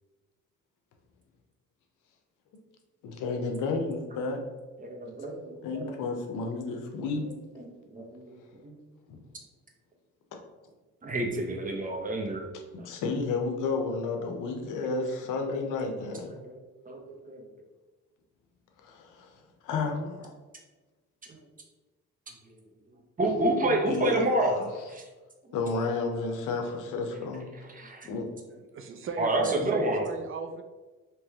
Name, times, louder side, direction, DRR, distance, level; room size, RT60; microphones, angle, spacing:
voice 1, 3.0-4.4 5.6-7.2 12.7-16.4 18.8-20.4 23.9-24.2 24.5-24.6 25.5-27.4 28.1-28.3, left 3 dB, 90° left, 3 dB, 0.7 m, -31 dB
voice 2, 4.8-5.9 7.2-8.4 8.6-8.8 11.0-12.5 15.6-15.7 16.0-17.5 21.2-21.4 23.2-24.5 24.9-25.1 25.4-25.6 27.1-27.3 27.5-28.2 29.2-30.1, right 1 dB, 25° right, 1 dB, 0.9 m, -30 dB
voice 3, 28.7-30.6, right 4 dB, 45° right, 6 dB, 0.4 m, -36 dB
3.2 x 3.0 x 3.5 m, 1.2 s
cardioid pair, 90°, 30 cm